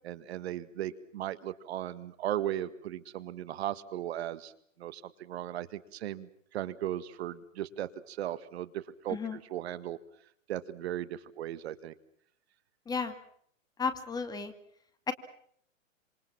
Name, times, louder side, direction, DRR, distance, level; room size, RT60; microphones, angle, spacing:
voice 1, 0.0-4.5 4.8-10.0 10.5-11.9, right 12 dB, 50° right, 15 dB, 1.8 m, -37 dB
voice 2, 13.8-14.5 15.1-15.2, left 5 dB, 10° left, 8 dB, 2.3 m, -33 dB
27.5 x 27.5 x 5.9 m, 0.67 s
hypercardioid pair, 145°, 39 cm